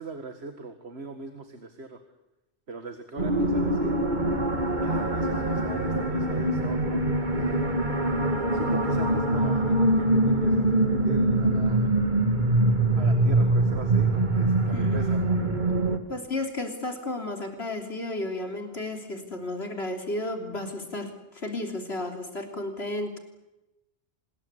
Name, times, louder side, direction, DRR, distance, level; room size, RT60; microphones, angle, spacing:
voice 1, 0.0-2.0 2.7-3.9 4.8-7.6 8.5-11.9 12.9-15.4, right 3 dB, 70° right, 8 dB, 2.1 m, -40 dB
sound 1, 3.2-16.0, right 2 dB, 45° right, 2.4 m, -24 dB
voice 2, 14.7-15.2 16.1-23.2, left 2 dB, 65° left, 5 dB, 3.6 m, -33 dB
26.0 x 21.5 x 8.2 m, 0.96 s
omnidirectional pair, 1.1 m